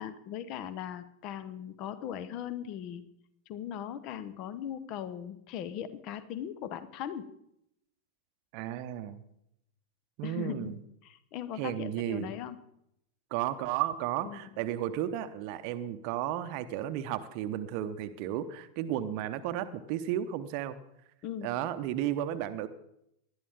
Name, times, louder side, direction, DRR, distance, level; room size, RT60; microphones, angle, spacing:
voice 1, 0.0-3.0 3.5-7.3 10.2-10.8 11.0-12.6 14.2-14.4 21.2-21.5, left 10 dB, 40° left, 14 dB, 0.9 m, -39 dB
voice 2, 8.5-9.2 10.2-10.8 11.6-12.3 13.3-20.8 21.4-22.7, right 11 dB, 45° right, 11 dB, 0.8 m, -33 dB
19.5 x 12.0 x 3.6 m, 0.78 s
figure-of-eight pair, 90°, 0 cm